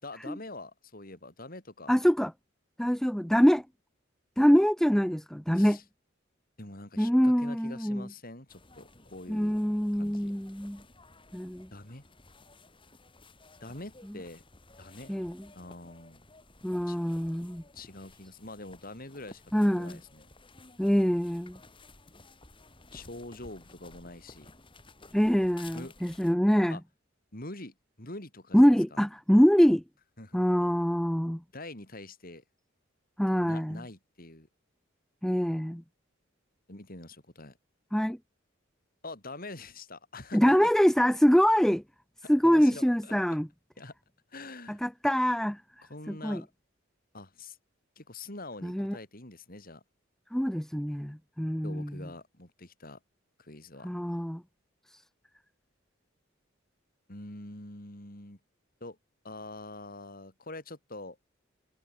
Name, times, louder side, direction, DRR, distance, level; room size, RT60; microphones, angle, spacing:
voice 1, 0.0-1.9 5.5-5.8 6.6-9.6 10.0-10.3 11.7-12.0 13.6-14.4 14.8-15.2 15.5-16.2 16.9-17.0 17.7-20.3 22.9-24.5 25.7-25.9 26.3-26.4 26.7-26.8 27.3-29.0 30.2-30.4 31.5-32.4 33.3-34.5 36.7-37.6 39.0-40.6 42.2-43.4 43.8-43.9 44.3-44.8 45.9-46.5 47.1-47.6 48.0-49.8 51.6-53.0 53.4-53.9 57.1-58.4 58.8-59.0 59.2-61.2, left 2 dB, 45° left, 5.7 m, -45 dB
voice 2, 1.9-2.3 2.8-3.6 4.4-5.8 7.0-8.1 9.3-10.8 11.3-11.7 15.1-15.4 16.6-17.6 19.5-20.0 20.8-21.6 25.1-26.8 28.5-29.8 30.3-31.4 33.2-33.8 35.2-35.8 37.9-38.2 40.3-41.8 42.3-43.5 44.7-45.6 46.1-46.4 48.6-49.0 50.3-51.9 53.8-54.4, equal, ahead, 0.6 m, -24 dB
sound 1, 8.5-26.3, left 2 dB, 25° left, 5.5 m, -55 dB
head